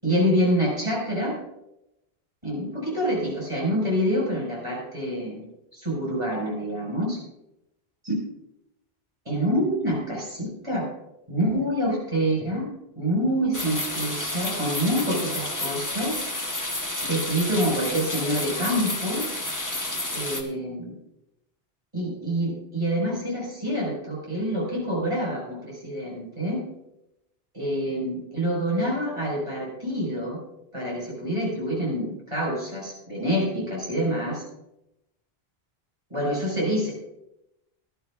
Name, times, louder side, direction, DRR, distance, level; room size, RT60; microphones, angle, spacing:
voice 1, 0.0-1.3 2.4-5.4 5.7-7.2 8.1-8.2 9.2-10.8 11.3-12.7 13.0-16.2 17.0-19.3 20.1-21.0 21.9-26.6 27.5-30.4 30.7-34.4 36.1-36.9, equal, 30° right, -5 dB, 5.7 m, -26 dB
sound 1, 13.5-20.4, left 1 dB, 20° left, 1.3 m, -30 dB
19.5 x 12.0 x 2.5 m, 0.88 s
omnidirectional pair, 1.0 m